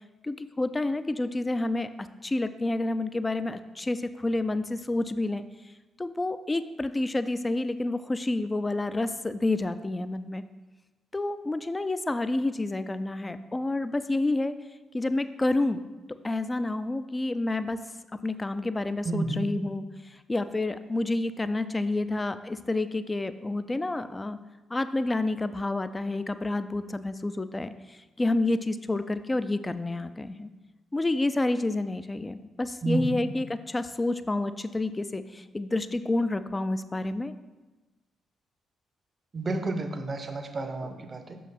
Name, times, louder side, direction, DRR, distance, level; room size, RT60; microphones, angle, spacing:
voice 1, 0.2-5.4 6.0-10.4 11.1-14.5 14.9-15.8 16.1-17.8 18.1-24.4 24.7-30.5 30.9-37.3, left 2 dB, 25° left, 12 dB, 0.4 m, -29 dB
voice 2, 19.0-19.5 32.8-33.2 39.3-41.4, right 2 dB, 40° right, 7 dB, 0.7 m, -30 dB
6.3 x 5.5 x 4.2 m, 1.2 s
figure-of-eight pair, 40°, 0 cm